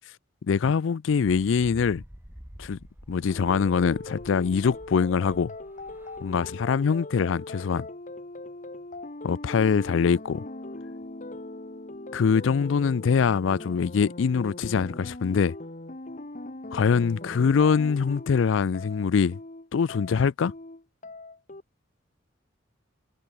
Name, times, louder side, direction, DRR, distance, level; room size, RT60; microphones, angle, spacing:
voice 1, 0.4-2.0 2.6-2.8 3.1-5.5 6.2-7.9 9.2-10.4 12.1-15.5 16.7-19.4 19.7-20.5, left 6 dB, 80° left, 0.4 m, -23 dB
sound 1, 1.3-6.4, equal, 10° right, 2.2 m, -48 dB
sound 2, 3.3-21.6, left 2 dB, 40° left, 1.7 m, -40 dB
head